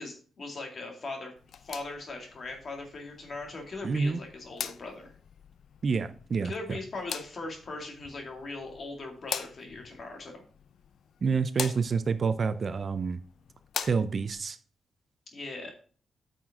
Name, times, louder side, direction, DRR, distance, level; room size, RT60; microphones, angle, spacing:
voice 1, 0.0-5.1 6.4-10.4 15.3-15.7, left 2 dB, 40° left, 2 dB, 2.3 m, -40 dB
sound 1, 1.4-14.4, left 7 dB, 65° left, 0.5 m, -43 dB
voice 2, 3.8-4.2 5.8-6.5 11.2-13.2 13.8-14.6, right 5 dB, 40° right, 12 dB, 0.5 m, -28 dB
9.0 x 6.0 x 3.6 m, 0.41 s
wide cardioid pair, 155°, 0 cm